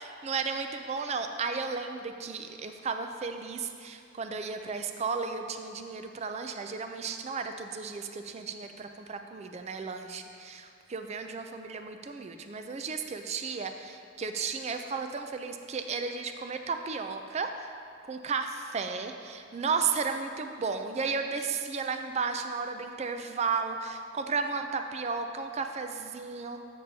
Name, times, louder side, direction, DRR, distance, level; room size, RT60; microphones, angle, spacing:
voice 1, 0.0-17.7 18.1-26.6, right 5 dB, 30° right, 6 dB, 0.3 m, -34 dB
13.5 x 7.0 x 2.7 m, 2.5 s
head